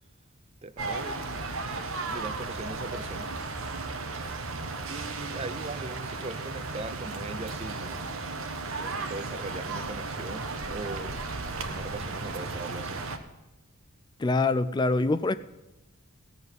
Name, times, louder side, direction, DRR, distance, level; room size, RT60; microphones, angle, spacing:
voice 1, 0.6-1.4 2.1-3.3 4.9-8.1 8.8-11.2 11.6-13.0, right 3 dB, 30° right, 0.5 m, -40 dB
sound 1, 0.8-13.2, right 3 dB, 70° right, 1.3 m, -35 dB
voice 2, 14.2-15.4, left 3 dB, 20° left, 0.3 m, -24 dB
17.0 x 6.8 x 8.2 m
head